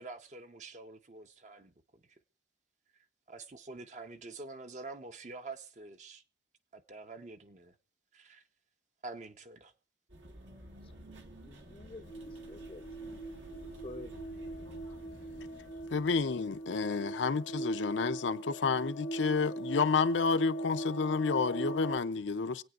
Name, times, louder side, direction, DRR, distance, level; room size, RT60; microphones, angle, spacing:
voice 1, 0.0-1.7 3.3-6.2 6.7-7.7 8.1-8.4 9.0-9.7, right 3 dB, 40° right, 0.7 m, -46 dB
sound 1, 10.1-17.0, right 1 dB, 75° right, 1.9 m, -51 dB
voice 2, 11.4-13.4 13.8-14.1, left 2 dB, 30° left, 0.5 m, -49 dB
sound 2, 12.0-22.0, right 1 dB, 90° left, 1.4 m, -40 dB
voice 3, 15.9-22.6, left 4 dB, 75° left, 0.5 m, -30 dB
27.0 x 8.9 x 2.4 m
head